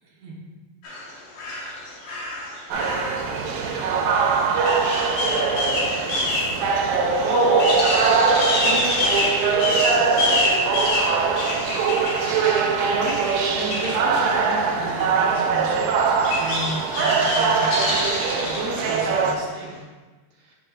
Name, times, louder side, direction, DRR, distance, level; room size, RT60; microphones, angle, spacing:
voice 1, 0.0-0.4 6.8-7.5 8.6-8.9 12.9-19.8 20.4-20.5, right 1 dB, 60° right, -5 dB, 1.8 m, -33 dB
sound 1, 0.8-14.2 14.7-19.0 19.3-19.7, left 1 dB, 75° left, 1.4 m, -27 dB
sound 2, 2.7-19.4, right 5 dB, 80° right, 2.1 m, -22 dB
7.9 x 5.2 x 2.4 m, 1.3 s
omnidirectional pair, 4.2 m